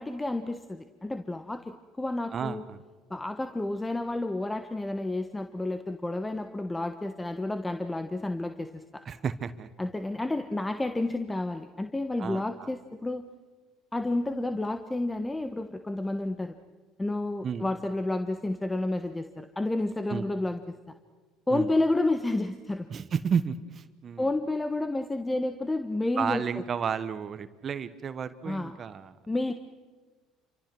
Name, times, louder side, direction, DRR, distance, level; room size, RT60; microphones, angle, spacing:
voice 1, 0.0-2.6 3.1-9.0 9.8-13.3 13.9-16.5 17.0-20.6 21.5-22.9 24.2-26.4 28.4-28.8 29.3-29.5, left 2 dB, 15° left, 8 dB, 1.3 m, -30 dB
voice 2, 2.3-2.8 9.0-9.7 12.2-12.7 17.4-17.7 20.1-20.3 21.5-21.7 22.9-24.3 26.2-29.2, right 7 dB, 40° right, 13 dB, 1.3 m, -32 dB
28.5 x 25.0 x 6.2 m, 1.3 s
hypercardioid pair, 70°, 0 cm